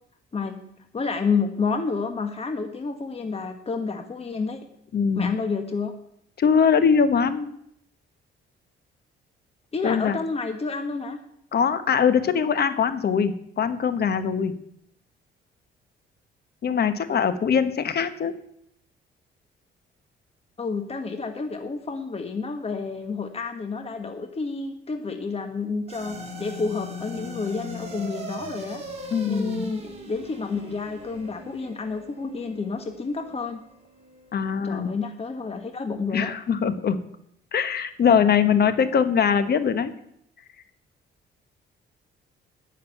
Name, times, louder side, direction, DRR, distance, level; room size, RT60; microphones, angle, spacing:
voice 1, 0.9-4.6 5.1-5.9 9.7-11.2 20.6-28.8 29.3-33.6 34.6-36.3, left 4 dB, 30° left, 6 dB, 1.4 m, -29 dB
voice 2, 4.9-5.3 6.4-7.5 9.8-10.2 11.5-14.5 16.6-18.3 29.1-29.7 34.3-34.9 36.1-37.0 37.5-39.9, left 7 dB, 55° left, 11 dB, 1.2 m, -22 dB
sound 1, 25.9-34.4, equal, 30° right, 3.9 m, -40 dB
11.0 x 6.6 x 9.4 m, 0.72 s
cardioid pair, 90°, 20 cm